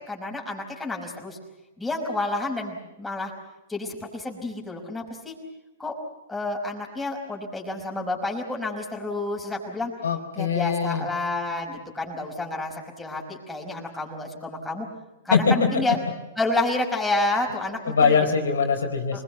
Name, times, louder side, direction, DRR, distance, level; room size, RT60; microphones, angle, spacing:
voice 1, 0.0-1.4 1.8-3.3 3.7-5.3 5.8-5.9 6.3-9.9 10.4-14.9 15.3-16.0 16.4-18.2 19.1-19.2, left 2 dB, 5° left, 0 dB, 5.3 m, -29 dB
voice 2, 10.0-11.1 15.3-15.7 17.9-19.2, left 5 dB, 80° left, 3 dB, 4.4 m, -22 dB
25.5 x 21.0 x 8.3 m, 1.0 s
hypercardioid pair, 120°, 0 cm